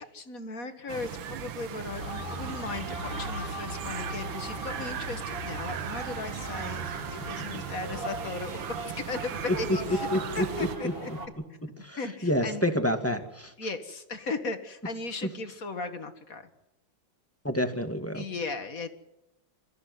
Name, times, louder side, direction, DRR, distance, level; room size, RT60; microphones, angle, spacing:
voice 1, 0.0-6.8 7.1-10.1 10.3-11.1 12.0-12.7 13.6-16.5 18.1-18.9, left 3 dB, 40° left, 8 dB, 2.1 m, -37 dB
sound 1, 0.9-10.8, right 9 dB, 70° right, 1.8 m, -38 dB
sound 2, 1.8-11.3, right 1 dB, 25° right, 3.2 m, -38 dB
voice 2, 10.1-10.5 10.8-10.9 11.8-13.5 17.4-18.2, left 1 dB, 5° left, 6 dB, 1.8 m, -28 dB
26.0 x 14.0 x 9.5 m, 0.90 s
omnidirectional pair, 2.3 m